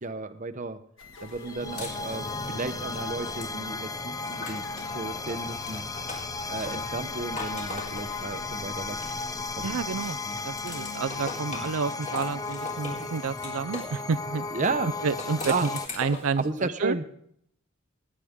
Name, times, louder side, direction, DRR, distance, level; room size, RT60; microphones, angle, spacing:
voice 1, 0.0-0.8 1.2-5.8 6.5-9.0 9.3-9.8 10.3-10.4 11.5-11.7 14.5-14.9 15.4-15.7 16.4-17.1, right 3 dB, 35° right, 10 dB, 0.8 m, -33 dB
sound 1, 1.0-12.9, left 3 dB, 60° left, 1.9 m, -46 dB
sound 2, 1.2-15.9, left 3 dB, 15° left, 0.5 m, -35 dB
sound 3, 1.3-4.9 5.4-9.5 9.9-14.0 15.0-16.4, left 2 dB, 35° left, 3.6 m, -41 dB
voice 2, 9.6-10.2 10.4-14.4 15.0-15.7 16.0-17.0, right 5 dB, 80° right, 12 dB, 0.4 m, -30 dB
20.0 x 9.9 x 3.7 m, 0.68 s
head